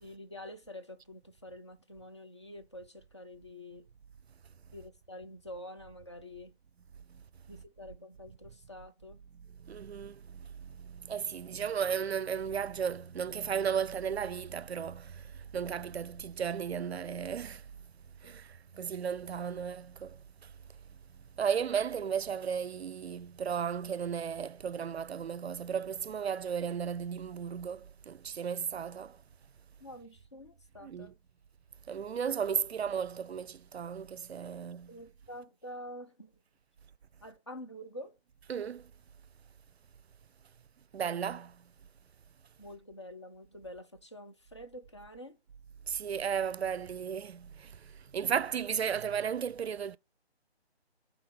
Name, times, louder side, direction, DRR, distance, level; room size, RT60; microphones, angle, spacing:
voice 1, 0.0-3.9 4.7-6.6 7.5-9.2 18.2-18.4 29.8-31.2 34.9-36.4 37.2-38.2 42.6-45.4, left 1 dB, 25° left, 0.5 m, -47 dB
voice 2, 9.6-17.6 18.2-20.2 21.4-29.2 30.8-31.1 31.9-35.0 38.5-38.9 40.9-41.6 45.9-47.8 48.1-50.0, right 7 dB, 70° right, 0.5 m, -35 dB
9.2 x 3.9 x 5.1 m
figure-of-eight pair, 155°, 33 cm